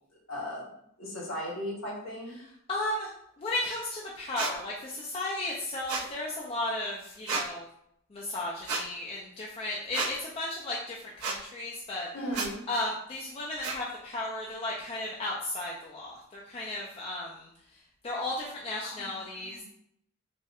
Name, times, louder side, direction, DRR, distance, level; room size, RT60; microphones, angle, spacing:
voice 1, 0.3-0.7 1.0-2.4 12.1-12.6 18.8-19.2 19.4-19.6, equal, 60° left, -3 dB, 1.1 m, -36 dB
voice 2, 2.4-3.1 3.4-7.7 8.1-12.1 12.7-19.6, left 2 dB, 25° left, -4 dB, 0.3 m, -35 dB
sound 1, 4.4-4.5 5.9-6.1 7.3-7.4 8.7-8.8 9.9-10.1 11.2-11.4 12.3-12.5 13.6-13.8, right 4 dB, 75° right, 0.7 m, -31 dB
4.2 x 2.1 x 2.3 m, 0.73 s
head